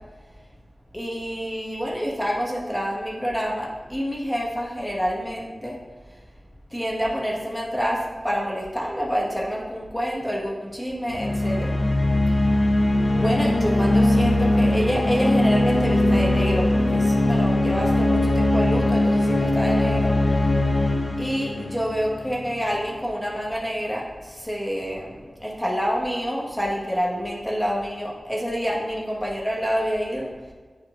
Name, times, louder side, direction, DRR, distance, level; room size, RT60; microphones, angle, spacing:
voice 1, 0.9-5.8 6.1-6.2 6.7-11.8 13.1-20.1 21.2-30.3, equal, 5° left, -4 dB, 1.5 m, -27 dB
sound 1, 11.1-22.6, left 1 dB, 70° left, 0.8 m, -21 dB
10.0 x 4.4 x 2.5 m, 1.5 s
wide cardioid pair, 75°, 0 cm